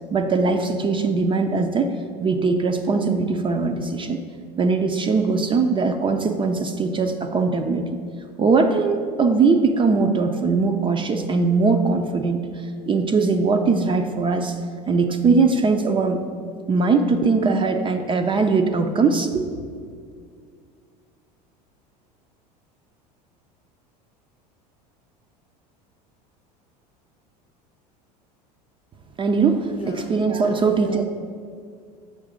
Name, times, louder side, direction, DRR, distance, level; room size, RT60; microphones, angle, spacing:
voice 1, 0.1-4.2 4.6-8.0 8.4-14.6 14.9-16.2 16.7-19.6 29.2-31.0, right 4 dB, 25° right, 6 dB, 0.4 m, -21 dB
voice 2, 29.7-31.0, left 5 dB, 30° left, 4 dB, 0.6 m, -35 dB
6.4 x 3.8 x 5.0 m, 2.1 s
hypercardioid pair, 80°, 21 cm